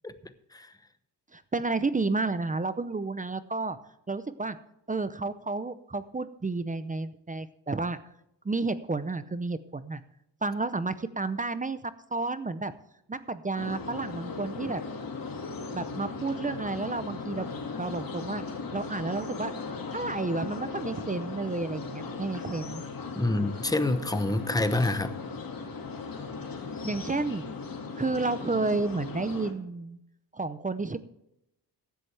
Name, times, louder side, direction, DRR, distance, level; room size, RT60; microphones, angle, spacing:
voice 1, 1.3-3.8 4.1-4.6 4.9-8.0 8.4-10.0 10.4-12.7 13.1-14.8 15.7-17.5 17.8-18.4 18.7-19.5 19.9-22.8 26.8-27.5 28.0-30.0 30.3-31.0, right 3 dB, 20° right, 0.6 m, -31 dB
sound 1, 13.6-29.5, left 4 dB, 50° left, 2.2 m, -38 dB
voice 2, 23.2-25.1, left 2 dB, 10° left, 0.9 m, -27 dB
15.0 x 11.0 x 3.4 m
wide cardioid pair, 130°, 43 cm